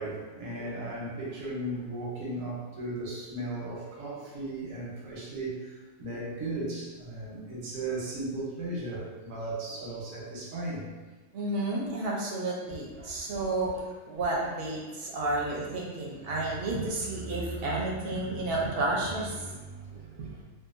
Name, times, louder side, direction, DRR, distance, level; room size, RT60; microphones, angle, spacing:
voice 1, 0.0-10.9 13.0-13.1 16.5-16.6 19.9-20.3, right 2 dB, 85° right, -4 dB, 1.1 m, -36 dB
voice 2, 11.3-19.9 20.2-20.4, right 2 dB, 65° right, -3 dB, 0.6 m, -31 dB
2.7 x 2.3 x 2.4 m, 1.3 s
omnidirectional pair, 1.4 m